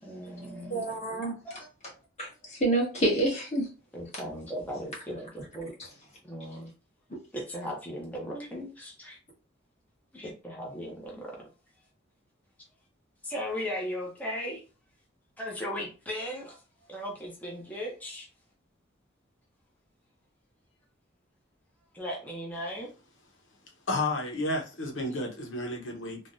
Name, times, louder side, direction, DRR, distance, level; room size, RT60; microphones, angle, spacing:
voice 1, 0.0-0.8 1.5-1.7 3.9-5.7 6.2-6.7 7.3-9.2 10.1-11.5 13.2-14.6 15.4-16.6 16.9-18.3 21.9-22.9, equal, 10° left, 0.7 m, -37 dB
voice 2, 0.7-1.4 2.2-3.7, right 2 dB, 35° left, 1.3 m, -27 dB
voice 3, 23.9-26.2, left 2 dB, 80° left, 0.8 m, -31 dB
3.4 x 2.1 x 2.5 m
head